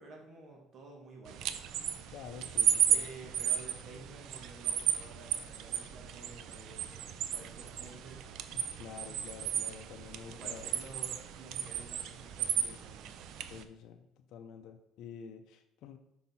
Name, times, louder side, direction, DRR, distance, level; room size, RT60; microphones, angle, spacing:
voice 1, 0.0-1.4 2.9-8.5 10.3-13.1, right 3 dB, 35° right, -1 dB, 1.4 m, -51 dB
sound 1, 1.3-13.6, right 9 dB, 60° right, 0.5 m, -34 dB
voice 2, 2.1-3.1 8.5-10.7 13.5-14.0 14.3-16.0, left 7 dB, 65° left, 4 dB, 0.6 m, -48 dB
5.9 x 5.5 x 4.2 m, 0.80 s
cardioid pair, 145°, 0 cm